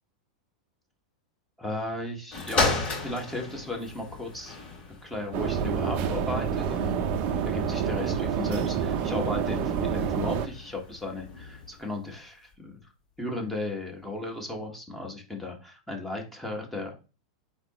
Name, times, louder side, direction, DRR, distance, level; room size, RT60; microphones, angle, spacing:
voice 1, 1.6-4.6 5.0-7.0 7.4-12.8 13.2-16.9, left 2 dB, 5° left, 1 dB, 1.4 m, -35 dB
sound 1, 2.3-11.8 12.5-12.6, left 3 dB, 35° left, 2.8 m, -35 dB
sound 2, 5.3-10.5, right 7 dB, 45° right, 0.6 m, -28 dB
4.1 x 3.0 x 4.2 m, 0.32 s
hypercardioid pair, 100°, 3 cm